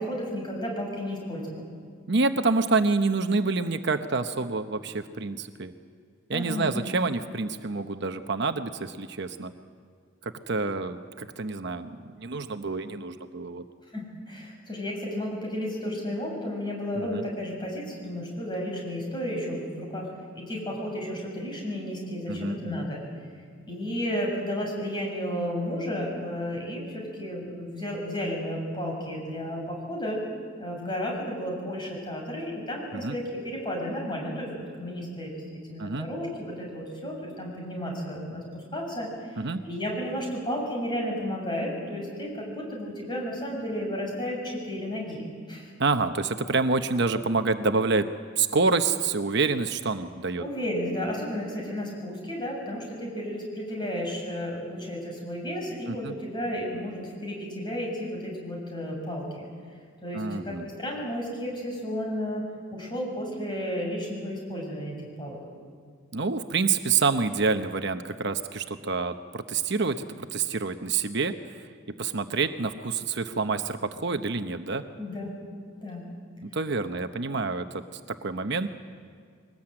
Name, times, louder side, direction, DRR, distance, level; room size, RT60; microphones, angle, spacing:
voice 1, 0.0-1.7 6.3-6.8 13.9-20.1 20.3-23.0 23.7-30.2 30.6-45.7 50.4-59.5 60.0-65.4 75.0-75.3 75.7-76.0, equal, 25° left, -1 dB, 6.9 m, -33 dB
voice 2, 2.1-5.7 6.3-9.5 10.2-13.6 16.9-17.2 22.3-22.9 32.9-33.2 35.8-36.1 39.4-39.6 45.8-48.1 48.4-50.4 55.9-56.1 60.1-60.7 66.1-70.0 70.3-71.7 72.0-74.8 76.4-78.7, right 4 dB, 60° right, 8 dB, 1.0 m, -27 dB
23.0 x 20.0 x 8.8 m, 2.1 s
head